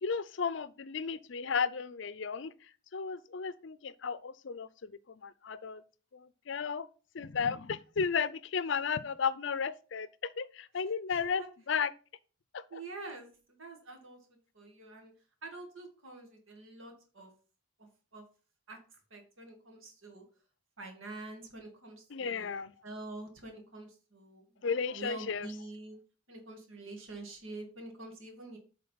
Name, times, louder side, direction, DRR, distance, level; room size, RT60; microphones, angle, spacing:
voice 1, 0.0-5.8 6.1-6.9 7.1-11.9 12.5-12.8 22.1-22.7 24.6-25.5, left 6 dB, 60° left, 0.5 m, -34 dB
voice 2, 11.1-11.5 12.7-13.3 13.6-14.2 14.5-15.1 15.4-17.3 17.8-18.3 18.7-18.8 19.1-20.2 20.8-22.5 22.8-24.7 24.9-26.0 26.3-28.6, right 2 dB, 75° right, 2.1 m, -46 dB
7.7 x 3.9 x 5.6 m
head